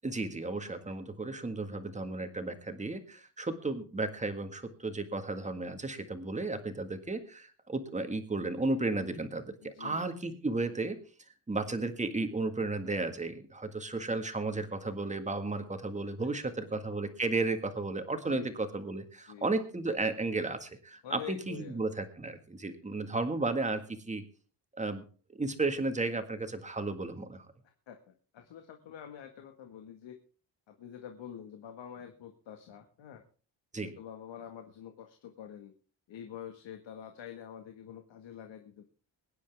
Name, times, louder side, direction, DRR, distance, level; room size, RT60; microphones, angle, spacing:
voice 1, 0.0-11.0 11.5-24.2 24.8-25.1 25.3-27.5 33.7-33.9, right 3 dB, 15° right, 7 dB, 1.8 m, -34 dB
voice 2, 9.6-10.1 16.4-16.5 18.2-18.6 19.2-19.5 21.0-21.8 27.6-30.2 30.7-33.2 33.7-35.7 36.1-38.8, left 9 dB, 80° left, 5 dB, 1.8 m, -47 dB
23.0 x 10.0 x 3.5 m, 0.39 s
cardioid pair, 145°, 44 cm